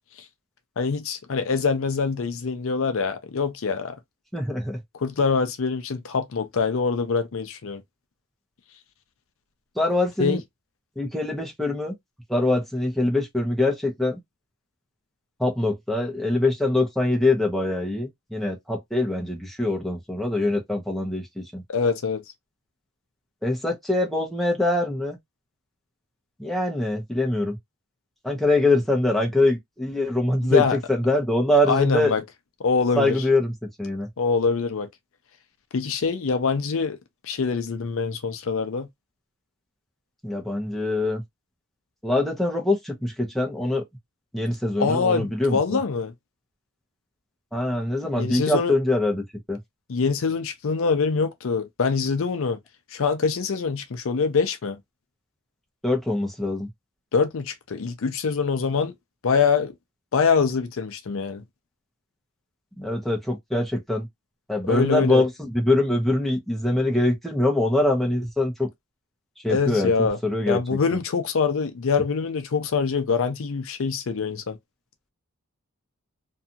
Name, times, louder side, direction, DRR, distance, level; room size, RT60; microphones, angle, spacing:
voice 1, 0.8-4.0 5.0-7.8 10.2-10.4 21.7-22.2 30.4-30.8 31.7-32.2 32.6-33.2 34.2-34.9 35.7-37.0 37.2-38.9 44.8-46.1 48.2-48.7 49.9-52.6 52.9-54.8 57.1-58.9 59.2-59.7 60.1-61.4 64.7-65.2 69.5-70.2 70.5-74.6, left 5 dB, 60° left, 0.5 m, -24 dB
voice 2, 4.3-4.8 9.8-10.4 11.0-11.9 12.3-14.2 15.4-21.6 23.4-25.2 26.4-27.6 28.2-30.6 30.9-32.1 32.9-33.5 33.8-34.1 40.2-41.2 42.0-43.8 44.3-45.8 47.5-49.2 49.5-49.6 55.8-56.7 62.8-64.1 64.5-68.7 69.4-71.0, left 2 dB, ahead, 0.7 m, -23 dB
2.7 x 2.4 x 2.7 m
head